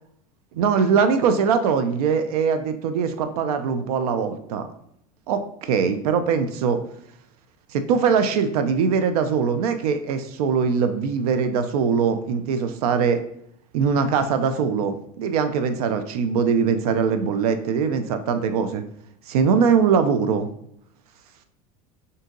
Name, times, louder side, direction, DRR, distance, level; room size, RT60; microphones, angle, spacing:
voice 1, 0.5-4.7 5.3-6.8 7.7-13.2 13.7-18.8 19.3-20.5, right 6 dB, 85° right, 9 dB, 0.4 m, -22 dB
3.7 x 2.7 x 3.6 m, 0.72 s
supercardioid pair, 115°, 19 cm